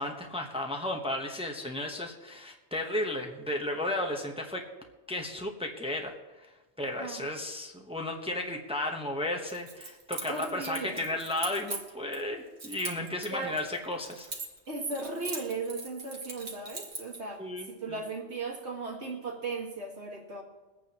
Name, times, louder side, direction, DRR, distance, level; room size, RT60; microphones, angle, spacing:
voice 1, 0.0-4.6 5.1-14.3 17.4-18.0, left 1 dB, 5° right, 2 dB, 1.0 m, -34 dB
Keys jangling, 9.5-12.2 12.6-14.7 14.9-17.2, right 4 dB, 65° right, 2.0 m, -40 dB
voice 2, 10.2-11.0 13.3-13.5 14.7-17.4 17.7-20.4, right 3 dB, 80° right, -1 dB, 2.2 m, -36 dB
23.0 x 8.9 x 3.0 m, 1.2 s
omnidirectional pair, 1.1 m